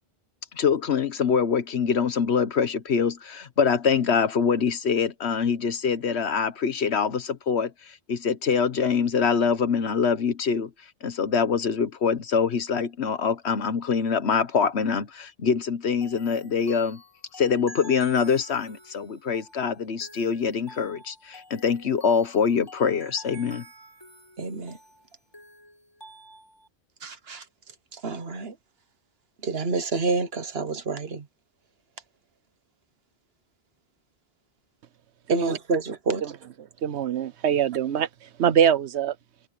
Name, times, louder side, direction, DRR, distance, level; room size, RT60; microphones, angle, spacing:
voice 1, 0.5-7.7 8.1-10.7 11.0-17.0 17.4-23.6, left 6 dB, 75° left, 1.4 m, -24 dB
sound 1, 16.0-26.7, equal, 20° left, 4.8 m, -49 dB
voice 2, 24.4-24.8 27.0-27.4 27.9-28.6 29.4-31.2 35.3-36.3, right 3 dB, 65° right, 1.5 m, -28 dB
voice 3, 36.8-38.1 38.4-39.1, right 9 dB, 85° right, 1.0 m, -23 dB
omnidirectional pair, 1.1 m